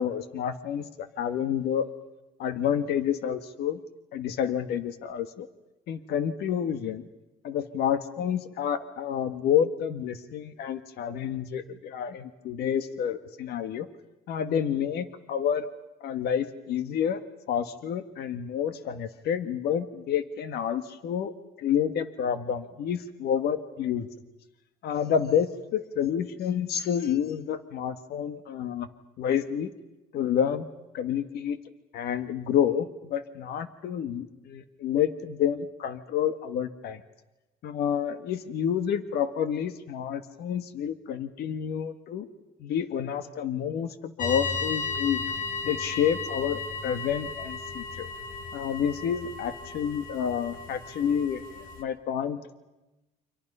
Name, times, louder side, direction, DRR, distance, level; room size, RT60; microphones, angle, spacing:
voice 1, 0.0-1.8 2.4-3.8 4.1-5.5 5.9-7.0 7.4-13.9 14.3-15.7 16.0-21.3 21.6-24.1 24.8-28.9 29.2-29.7 30.1-30.7 30.9-31.6 31.9-37.0 37.6-42.3 42.6-45.2 45.6-48.1 48.5-52.4, left 8 dB, 70° left, 10 dB, 1.6 m, -29 dB
sound 1, 44.2-51.8, left 4 dB, 55° left, 2.6 m, -35 dB
29.5 x 26.5 x 5.6 m, 1.0 s
cardioid pair, 110°, 17 cm